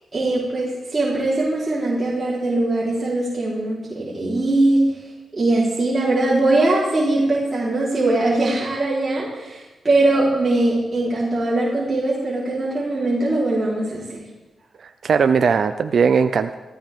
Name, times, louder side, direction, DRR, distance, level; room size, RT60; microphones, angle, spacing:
voice 1, 0.1-4.8 5.3-14.2, right 2 dB, 30° right, -7 dB, 4.0 m, -21 dB
voice 2, 14.8-16.5, right 6 dB, 65° right, 9 dB, 0.6 m, -18 dB
18.5 x 15.0 x 3.7 m, 1.1 s
cardioid pair, 80°, 0 cm